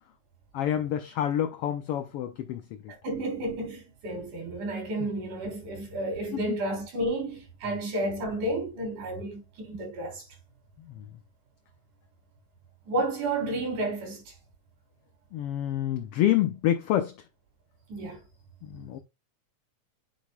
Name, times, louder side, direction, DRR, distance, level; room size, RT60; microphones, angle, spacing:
voice 1, 0.5-2.6 6.3-6.6 7.7-7.8 10.9-11.0 15.3-17.1 18.6-19.0, left 11 dB, 85° left, 1.3 m, -28 dB
voice 2, 3.0-10.2 12.9-14.2 17.9-18.2, right 2 dB, 90° right, 4.9 m, -31 dB
9.2 x 6.8 x 2.2 m
omnidirectional pair, 3.4 m